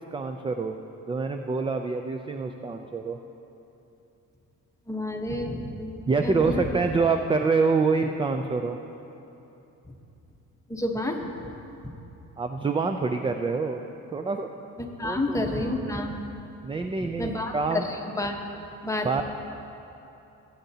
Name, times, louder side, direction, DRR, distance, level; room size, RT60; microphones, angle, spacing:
voice 1, 0.1-0.7 1.1-3.2 6.1-8.8 12.4-13.8 14.1-14.5 15.0-15.8 16.6-17.9 19.0-19.2, right 4 dB, 15° right, 6 dB, 0.4 m, -26 dB
voice 2, 4.9-6.8 10.7-11.3 14.8-16.2 17.0-18.3 18.8-19.1, left 1 dB, 10° left, 1 dB, 1.1 m, -30 dB
17.0 x 8.0 x 2.8 m, 2.9 s
cardioid pair, 90°, 30 cm